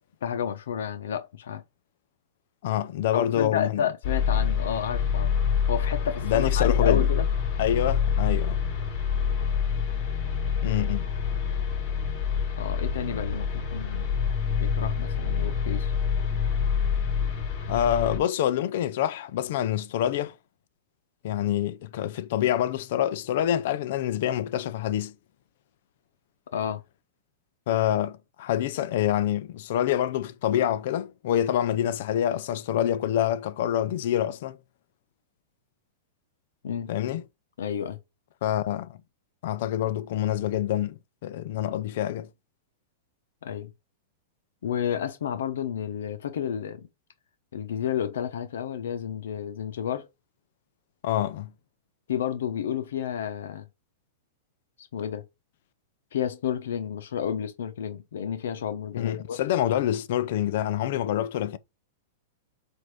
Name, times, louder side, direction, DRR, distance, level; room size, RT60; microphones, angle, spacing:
voice 1, 0.2-1.6 3.1-5.3 5.7-7.3 12.6-14.1 14.6-15.9 26.5-26.8 36.6-36.9 37.6-38.0 43.4-43.7 44.6-46.9 47.5-50.1 52.1-53.7 54.8-55.3 56.1-59.4, left 8 dB, 85° left, 0.9 m, -31 dB
voice 2, 2.6-3.9 6.2-7.1 7.6-8.6 10.6-11.0 17.7-20.3 21.2-25.1 27.7-34.6 36.9-37.2 38.4-39.0 39.4-42.3 51.0-51.5 58.9-61.6, left 11 dB, 50° left, 0.5 m, -26 dB
sound 1, 4.0-18.2, left 7 dB, 25° left, 4.5 m, -26 dB
7.8 x 2.7 x 5.0 m
supercardioid pair, 170°, 0 cm